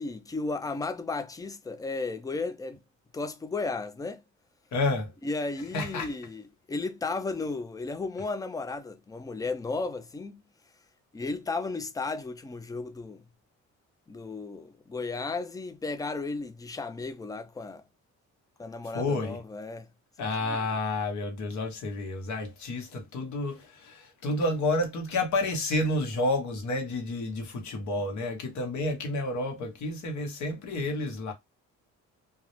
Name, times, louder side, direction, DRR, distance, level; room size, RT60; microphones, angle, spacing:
voice 1, 0.0-2.8 3.1-4.2 5.2-10.4 11.1-13.3 14.1-17.8 18.6-19.9 20.4-20.6, left 3 dB, 15° left, 0.3 m, -34 dB
voice 2, 4.7-5.1 5.7-6.1 18.9-19.4 20.2-31.3, left 2 dB, 70° left, 0.9 m, -30 dB
2.2 x 2.0 x 2.8 m
cardioid pair, 90°, 30 cm